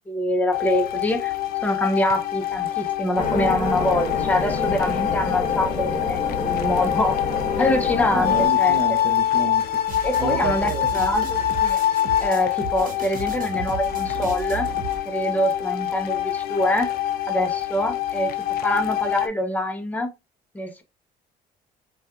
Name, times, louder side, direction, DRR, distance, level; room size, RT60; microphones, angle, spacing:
voice 1, 0.1-1.3 1.6-7.2 7.6-8.8 10.0-11.8 12.2-14.7 15.1-16.9 17.3-18.3 18.6-20.1 20.5-20.8, left 1 dB, 10° left, 0.6 m, -25 dB
sound 1, 0.5-19.3, left 12 dB, 65° left, 0.5 m, -25 dB
sound 2, 3.2-8.5, left 3 dB, 45° left, 1.1 m, -28 dB
voice 2, 8.1-9.8 10.2-10.9, right 4 dB, 35° right, 0.5 m, -30 dB
sound 3, 9.9-15.0, right 6 dB, 55° right, 1.0 m, -34 dB
4.1 x 2.3 x 2.3 m
cardioid pair, 110°, 17 cm